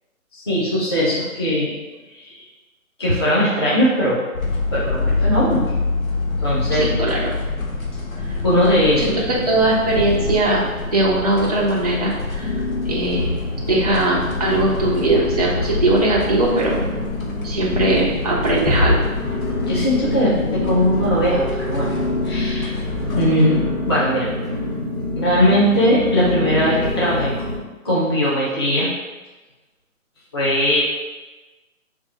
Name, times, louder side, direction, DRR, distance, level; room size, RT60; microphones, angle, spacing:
voice 1, 0.3-1.8 2.1-2.4 3.0-4.2 4.7-5.6 6.4-6.9 8.4-9.3 19.6-21.9 22.2-22.8 23.1-24.3 25.1-27.3 27.8-28.9 30.3-30.8, equal, 20° left, -9 dB, 0.6 m, -19 dB
sound 1, 4.3-23.3, left 3 dB, 70° left, 1.1 m, -26 dB
voice 2, 6.8-7.3 9.0-12.5 12.9-13.4 13.7-16.8 17.4-19.0, right 2 dB, 30° right, -5 dB, 0.4 m, -20 dB
sound 2, 9.2-10.2 10.4-11.1 11.6-11.7 12.4-27.6, left 2 dB, 85° left, 1.5 m, -27 dB
3.4 x 2.4 x 4.3 m, 1.2 s
figure-of-eight pair, 150°, 43 cm